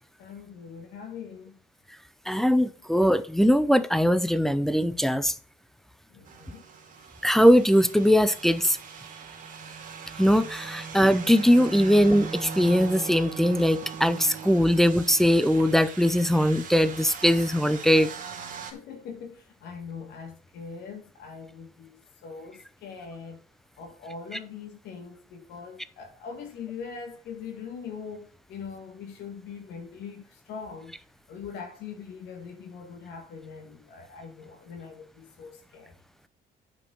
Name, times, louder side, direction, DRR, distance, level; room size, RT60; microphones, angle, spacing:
voice 1, 0.2-1.6 6.1-6.7 18.7-23.4 23.8-31.0 31.3-36.0, left 6 dB, 80° left, 1.8 m, -42 dB
voice 2, 2.3-5.3 7.2-8.8 10.2-18.1, equal, ahead, 0.6 m, -21 dB
sound 1, 6.3-18.7, right 5 dB, 50° right, 2.3 m, -40 dB
8.6 x 5.4 x 6.3 m
cardioid pair, 110°, 17 cm